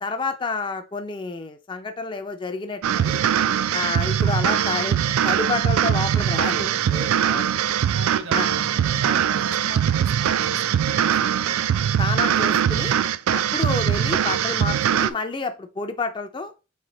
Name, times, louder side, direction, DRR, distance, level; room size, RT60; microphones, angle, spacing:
voice 1, 0.0-3.2 3.7-5.0 5.2-7.6 8.3-8.5 11.6-11.7 12.0-13.0 13.3-16.5, left 4 dB, 20° left, 8 dB, 0.4 m, -29 dB
sound 1, 2.8-15.1, right 9 dB, 85° right, 0.3 m, -21 dB
voice 2, 7.9-11.5, right 2 dB, 70° right, 6 dB, 1.1 m, -38 dB
4.2 x 3.2 x 3.8 m, 0.31 s
head